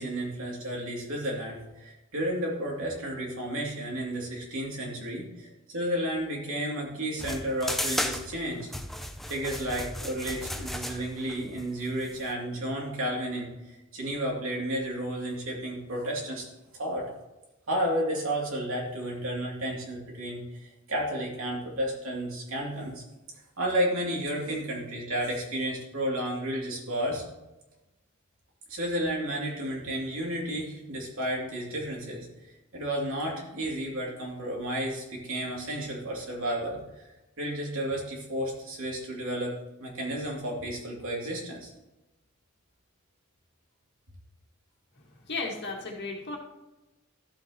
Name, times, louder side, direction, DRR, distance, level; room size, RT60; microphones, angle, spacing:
voice 1, 0.0-8.7 9.3-16.5 16.7-17.1 17.7-23.0 23.6-27.2 28.7-32.3 32.7-37.1 37.4-39.5 39.8-41.7, right 1 dB, 70° right, -3 dB, 2.8 m, -32 dB
sound 1, 7.2-12.3, left 1 dB, ahead, 0.5 m, -35 dB
voice 2, 45.3-46.4, left 3 dB, 55° left, -1 dB, 1.9 m, -34 dB
13.0 x 7.4 x 3.0 m, 1.0 s
head